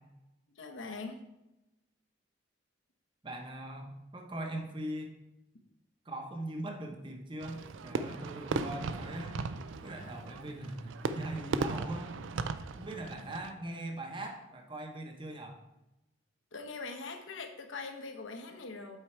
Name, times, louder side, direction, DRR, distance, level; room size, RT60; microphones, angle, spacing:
voice 1, 0.6-1.2 16.5-19.0, left 3 dB, 80° left, 4 dB, 0.9 m, -42 dB
voice 2, 3.2-5.1 6.1-9.4 9.8-12.1 12.8-15.6, right 1 dB, 25° right, 3 dB, 0.8 m, -41 dB
Fireworks, 7.4-13.5, right 4 dB, 80° right, 0.4 m, -37 dB
8.0 x 4.6 x 4.5 m, 0.94 s
head